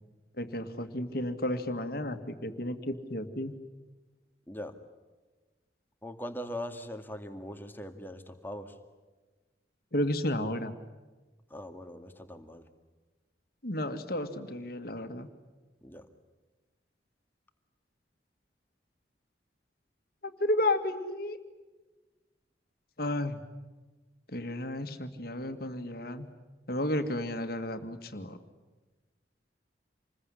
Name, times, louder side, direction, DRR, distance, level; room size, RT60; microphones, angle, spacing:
voice 1, 0.4-3.5 9.9-10.7 13.6-15.3 20.2-21.4 23.0-23.4 24.3-26.3 26.7-28.4, left 1 dB, 55° left, 7 dB, 2.0 m, -32 dB
voice 2, 6.0-8.8 11.5-12.6 15.8-16.0, left 1 dB, 10° left, 6 dB, 2.0 m, -41 dB
27.5 x 21.5 x 10.0 m, 1.3 s
head